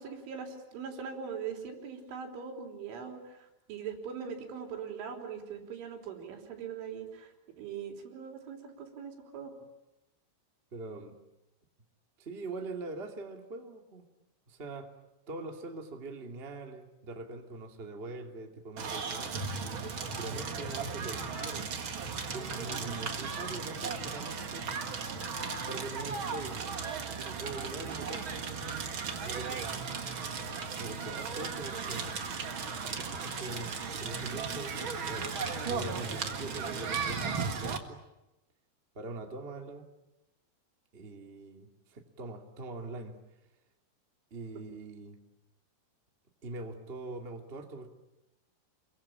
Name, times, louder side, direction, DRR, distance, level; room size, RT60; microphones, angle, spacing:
voice 1, 0.0-7.3 7.6-9.5, right 6 dB, 85° right, 3 dB, 6.0 m, -41 dB
voice 2, 10.7-11.2 12.2-14.0 14.5-14.9 15.3-19.4 20.2-21.7 22.3-24.7 25.7-26.6 27.2-28.9 29.2-29.7 30.7-32.1 32.8-34.8 35.1-35.3 35.7-38.0 38.9-39.8 40.9-43.2 44.3-45.2 46.4-47.9, right 3 dB, 20° right, 3 dB, 1.6 m, -43 dB
Crackle, 18.8-37.8, right 5 dB, 60° right, 1.2 m, -36 dB
27.5 x 23.5 x 8.8 m, 0.93 s
omnidirectional pair, 5.4 m